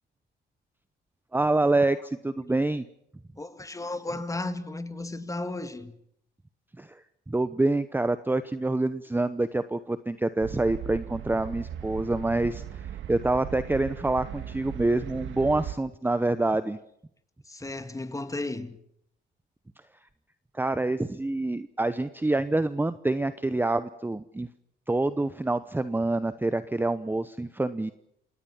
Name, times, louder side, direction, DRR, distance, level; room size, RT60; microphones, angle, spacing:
voice 1, 1.3-2.8 6.8-16.8 20.5-24.5 24.9-27.9, right 2 dB, 10° right, 0.8 m, -27 dB
voice 2, 3.4-5.9 17.5-18.8, left 2 dB, 15° left, 2.2 m, -34 dB
sound 1, 10.4-15.7, right 10 dB, 75° right, 1.6 m, -38 dB
26.5 x 18.0 x 7.4 m
cardioid pair, 90°, 20 cm